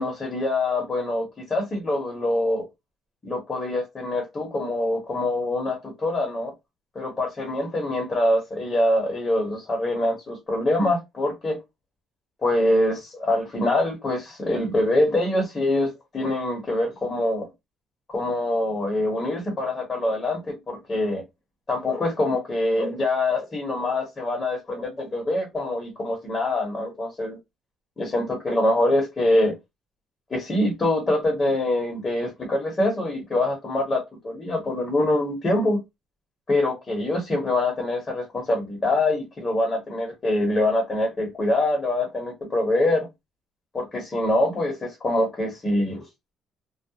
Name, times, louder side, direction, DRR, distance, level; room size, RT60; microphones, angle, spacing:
voice 1, 0.0-2.6 3.2-6.5 6.9-11.6 12.4-17.4 18.1-21.2 21.7-27.4 28.0-29.5 30.3-35.8 36.5-43.1 43.7-46.0, left 1 dB, 25° left, 0.9 m, -24 dB
2.3 x 2.1 x 2.7 m
cardioid pair, 140°, 0 cm